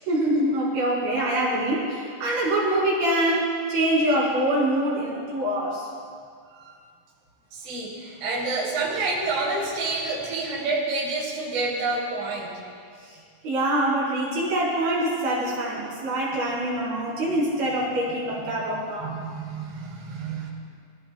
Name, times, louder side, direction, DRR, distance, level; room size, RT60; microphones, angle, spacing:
voice 1, 0.1-5.9 13.1-13.2 13.4-19.2, right 1 dB, 50° right, -7 dB, 5.5 m, -24 dB
voice 2, 7.5-12.6 18.7-20.5, right 3 dB, 30° right, -7 dB, 3.7 m, -29 dB
25.5 x 16.5 x 2.4 m, 2.2 s
omnidirectional pair, 5.9 m